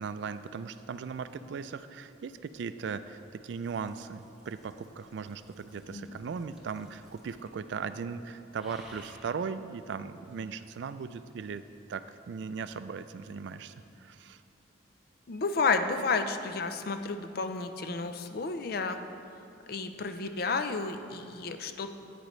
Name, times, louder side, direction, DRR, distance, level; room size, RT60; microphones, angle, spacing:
voice 1, 0.0-11.6 11.9-14.4, right 5 dB, 65° right, 12 dB, 0.3 m, -38 dB
sound 1, 2.2-7.7 7.9-8.2 8.6-9.4 10.3-10.4, equal, ahead, 0.9 m, -56 dB
voice 2, 15.3-19.0 19.7-21.9, left 4 dB, 50° left, 8 dB, 0.4 m, -31 dB
9.9 x 9.1 x 3.1 m, 2.6 s
head